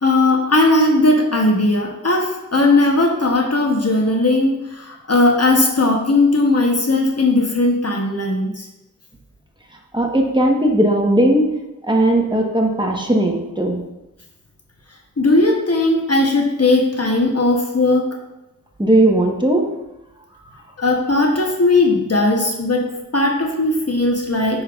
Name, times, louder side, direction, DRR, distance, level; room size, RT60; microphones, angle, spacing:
voice 1, 0.0-8.7 15.2-18.1 20.8-22.9 23.1-24.6, left 2 dB, 50° left, 1 dB, 0.9 m, -17 dB
voice 2, 9.9-11.6 11.8-13.8 18.8-19.7, right 1 dB, 15° right, 1 dB, 1.1 m, -17 dB
9.3 x 5.5 x 2.4 m, 0.96 s
wide cardioid pair, 65°, 32 cm